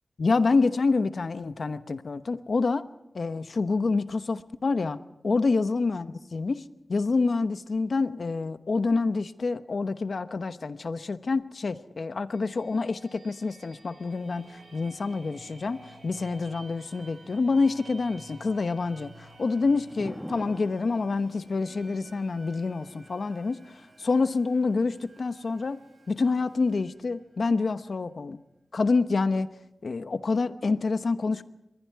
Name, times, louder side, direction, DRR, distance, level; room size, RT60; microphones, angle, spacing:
voice 1, 0.2-2.8 3.1-6.6 6.9-25.8 26.1-28.4 28.7-29.5 29.8-31.4, left 4 dB, 70° left, 12 dB, 0.9 m, -27 dB
sound 1, 12.3-27.9, right 2 dB, 90° right, 7.2 m, -53 dB
Thunder / Rain, 14.1-26.8, equal, ahead, 1.8 m, -50 dB
26.5 x 21.5 x 4.7 m, 0.88 s
wide cardioid pair, 75°, 0 cm